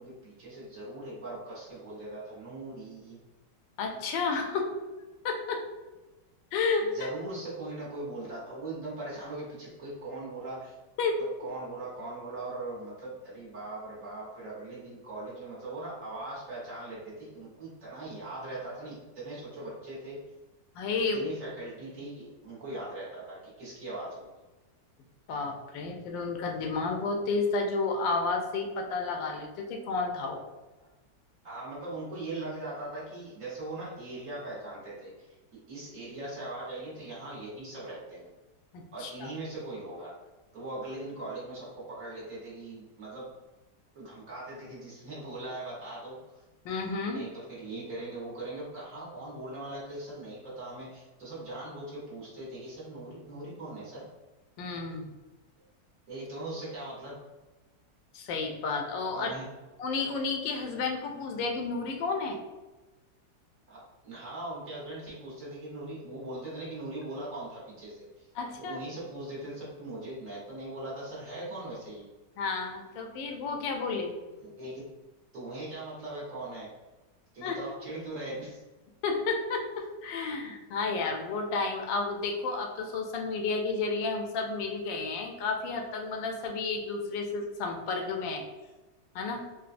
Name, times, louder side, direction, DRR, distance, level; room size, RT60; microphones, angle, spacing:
voice 1, 0.0-3.2 6.8-10.8 11.4-20.2 21.1-24.3 31.4-38.3 38.9-40.1 40.5-43.3 43.9-46.4 47.1-54.0 56.1-57.1 59.1-59.5 63.7-68.3 68.6-72.1 74.4-74.9 75.3-76.7 77.3-78.6, right 2 dB, 50° right, -7 dB, 1.3 m, -40 dB
voice 2, 3.8-4.8 5.2-5.7 6.5-7.1 11.0-11.2 20.8-21.3 25.3-30.4 38.7-39.3 46.6-47.2 54.6-55.1 58.1-59.3 59.8-62.4 68.4-68.8 72.4-74.1 77.4-77.6 79.0-88.4 89.1-89.5, left 4 dB, 85° left, 3 dB, 1.3 m, -31 dB
3.9 x 2.3 x 2.5 m, 1.1 s
omnidirectional pair, 1.9 m